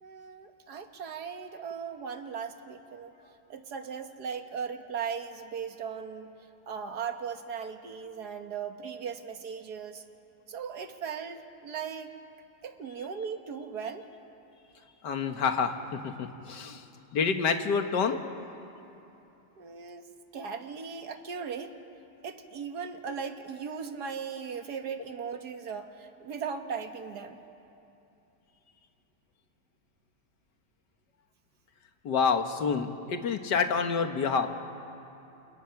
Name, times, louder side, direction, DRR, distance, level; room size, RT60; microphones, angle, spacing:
voice 1, 0.0-3.1 3.5-6.3 6.7-10.1 10.5-12.1 12.6-14.1 19.6-21.8 22.2-27.4, right 6 dB, 65° right, 6 dB, 1.9 m, -38 dB
voice 2, 15.0-16.8 17.1-18.2 32.0-34.5, left 5 dB, 75° left, 6 dB, 2.0 m, -28 dB
29.0 x 28.0 x 5.9 m, 2.9 s
omnidirectional pair, 1.9 m